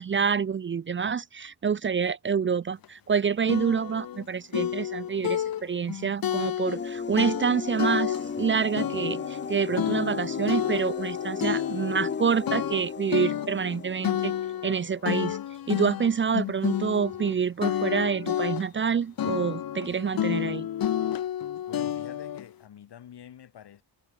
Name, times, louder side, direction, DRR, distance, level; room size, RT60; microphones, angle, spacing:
voice 1, 0.0-14.3 14.6-15.4 15.7-20.7, right 6 dB, 30° right, 0.4 m, -27 dB
sound 1, 2.8-2.9 3.5-4.2 4.5-6.9 7.2-8.5 8.8-12.2 12.5-17.3 17.6-18.9 19.2-22.4, left 10 dB, 60° left, 0.9 m, -30 dB
sound 2, 6.7-15.0, left 5 dB, 30° left, 0.8 m, -36 dB
voice 2, 21.7-23.8, left 10 dB, 85° left, 6.3 m, -47 dB
wide cardioid pair, 115°, 39 cm